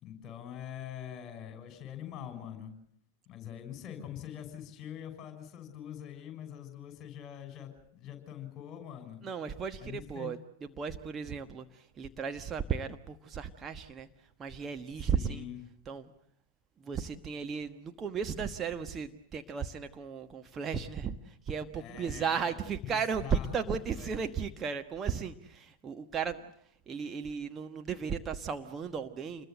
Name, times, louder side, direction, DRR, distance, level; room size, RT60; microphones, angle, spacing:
voice 1, 0.0-2.7 3.3-9.3 9.8-10.3 15.0-15.6 21.7-22.5 22.8-24.1, left 10 dB, 30° left, 7 dB, 6.7 m, -44 dB
voice 2, 9.2-15.5 15.8-16.1 16.8-26.4 26.9-29.5, right 6 dB, 25° right, 6 dB, 1.3 m, -35 dB
28.5 x 21.5 x 7.8 m, 0.67 s
figure-of-eight pair, 90°, 0 cm